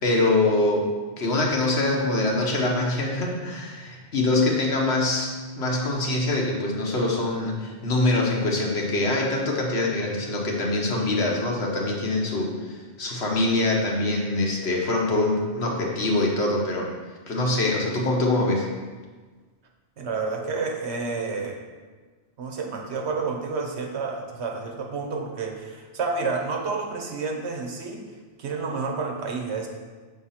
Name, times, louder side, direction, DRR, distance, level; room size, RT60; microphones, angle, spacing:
voice 1, 0.0-16.9 17.3-18.7, left 2 dB, 80° left, -1 dB, 1.4 m, -24 dB
voice 2, 20.0-21.6 22.4-28.1 28.4-29.7, right 4 dB, 80° right, 2 dB, 1.2 m, -30 dB
6.3 x 3.6 x 5.7 m, 1.4 s
omnidirectional pair, 1.1 m